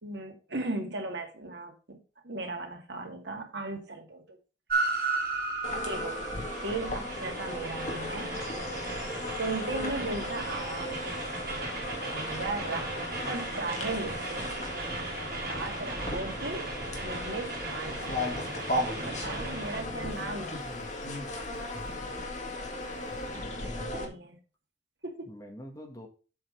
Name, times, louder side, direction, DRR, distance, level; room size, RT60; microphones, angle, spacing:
voice 1, 0.0-2.0 2.2-4.4 4.8-5.2 5.8-6.2 6.6-8.3 9.4-11.2 12.0-12.9 13.3-14.5 15.5-16.7 17.0-18.2 19.0-20.6 23.3-24.4 25.0-25.3, right 2 dB, 75° right, 2.2 m, -37 dB
Train, 4.7-19.8, right 3 dB, 55° right, 3.2 m, -36 dB
sound 1, 5.6-24.0, left 1 dB, 40° left, 1.9 m, -36 dB
voice 2, 5.7-6.0 9.8-10.0 12.5-12.9 15.7-15.9 23.1-24.0 25.3-26.1, equal, 20° left, 1.8 m, -47 dB
sound 2, 17.8-23.4, left 2 dB, 15° right, 3.2 m, -52 dB
7.8 x 5.6 x 5.1 m
head